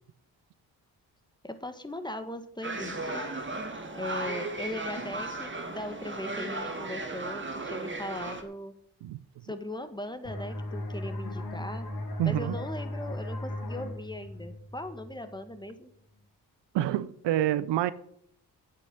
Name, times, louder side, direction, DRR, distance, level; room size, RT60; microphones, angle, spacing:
voice 1, 1.4-3.3 3.9-8.7 9.4-11.9 12.2-15.9, left 1 dB, 10° left, 1.9 m, -39 dB
sound 1, 2.6-8.4, right 2 dB, 25° right, 2.4 m, -36 dB
sound 2, 10.2-15.6, left 1 dB, 65° left, 3.1 m, -37 dB
voice 2, 12.2-12.6 16.7-17.9, right 12 dB, 75° right, 0.7 m, -27 dB
8.5 x 8.4 x 7.9 m
supercardioid pair, 45°, 43 cm